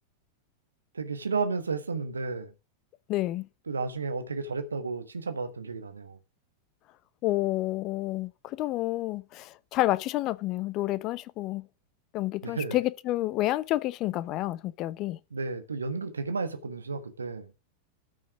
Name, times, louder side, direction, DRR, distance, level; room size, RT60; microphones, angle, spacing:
voice 1, 0.9-2.5 3.7-6.2 12.4-12.8 15.3-17.5, right 4 dB, 75° right, 1.3 m, -32 dB
voice 2, 3.1-3.5 7.2-11.7 12.1-15.2, left 16 dB, 40° left, 0.8 m, -29 dB
13.5 x 6.2 x 5.0 m
figure-of-eight pair, 90°, 0 cm